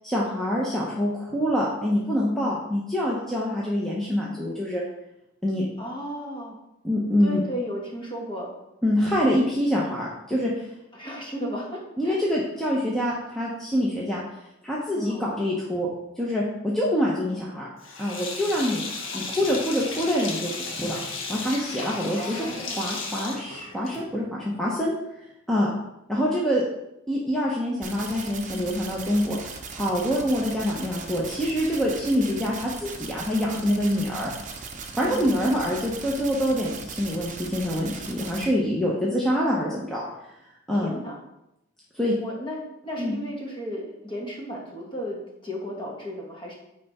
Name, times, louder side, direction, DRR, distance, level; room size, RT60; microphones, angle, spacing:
voice 1, 0.0-4.8 5.4-5.7 6.8-7.4 8.8-10.5 12.0-14.2 14.6-15.9 16.2-17.7 18.0-18.8 19.1-21.0 21.3-22.4 22.8-25.0 25.5-25.7 26.1-26.6 27.1-29.4 29.7-34.3 35.0-40.0 40.7-40.9 41.9-42.2 43.0-43.1, equal, ahead, -5 dB, 0.8 m, -25 dB
voice 2, 5.8-6.6 7.2-8.5 10.9-12.2 14.9-15.2 22.2-22.9 35.0-35.4 40.7-41.2 42.2-46.5, equal, 25° left, -2 dB, 1.5 m, -34 dB
Sink (filling or washing), 17.8-24.2, left 3 dB, 65° left, 1.1 m, -35 dB
sound 1, 27.8-38.5, right 5 dB, 40° right, 0.8 m, -38 dB
9.1 x 3.4 x 4.2 m, 0.87 s
head